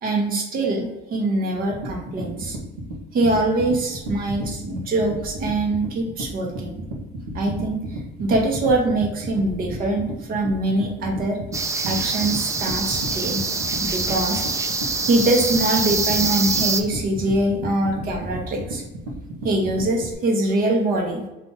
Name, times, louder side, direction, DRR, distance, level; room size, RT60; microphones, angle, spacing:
voice 1, 0.0-2.6 3.1-6.7 7.3-7.8 8.2-11.4 11.8-13.4 13.8-14.4 15.1-18.8 19.4-21.3, right 2 dB, 50° right, 1 dB, 1.2 m, -23 dB
sound 1, 1.5-20.1, right 1 dB, 80° right, 1.1 m, -33 dB
sound 2, 11.5-16.8, right 4 dB, 15° right, 0.3 m, -25 dB
3.8 x 2.8 x 3.8 m, 0.99 s
cardioid pair, 110°, 19 cm